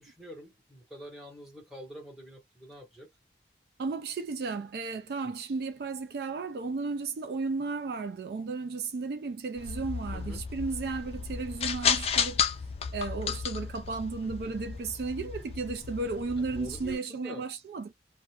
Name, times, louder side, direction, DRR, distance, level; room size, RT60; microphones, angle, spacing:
voice 1, 0.0-3.1 5.2-5.3 10.1-10.5 14.2-14.5 16.4-17.5, right 1 dB, ahead, 1.1 m, -46 dB
voice 2, 3.8-12.4 12.9-17.9, right 4 dB, 60° right, 0.3 m, -34 dB
sound 1, 9.6-16.9, left 6 dB, 35° left, 0.3 m, -33 dB
2.4 x 2.1 x 2.8 m
head